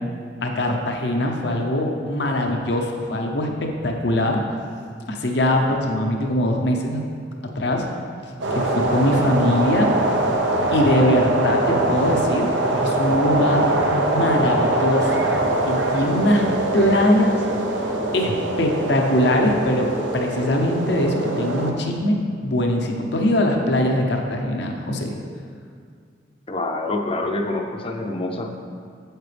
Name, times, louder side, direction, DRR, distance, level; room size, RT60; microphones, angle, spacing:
voice 1, 0.4-4.4 5.1-7.0 7.5-7.8 8.5-9.9 10.7-13.7 13.9-15.2 15.7-16.5 16.7-17.3 18.1-22.2 22.4-25.1, left 1 dB, 65° left, 2 dB, 0.8 m, -21 dB
sound 1, 8.4-21.7, right 2 dB, 90° right, 0.9 m, -23 dB
voice 2, 26.5-28.5, left 2 dB, 30° left, 3 dB, 0.6 m, -26 dB
8.8 x 7.5 x 3.4 m, 2.1 s
head